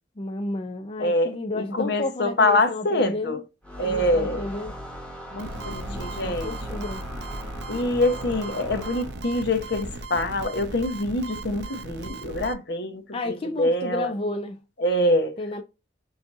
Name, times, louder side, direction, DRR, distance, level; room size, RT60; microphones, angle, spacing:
voice 1, 0.2-3.4 3.8-4.7 5.8-7.1 13.1-14.6 15.4-15.6, left 2 dB, 30° left, 0.5 m, -32 dB
voice 2, 1.0-3.4 3.8-4.4 5.3-6.5 7.7-14.1 14.8-15.3, left 1 dB, 65° left, 1.1 m, -25 dB
sound 1, 3.6-9.4, equal, 5° left, 1.2 m, -37 dB
sound 2, 5.4-12.5, right 3 dB, 70° right, 0.7 m, -37 dB
6.7 x 2.7 x 2.6 m
head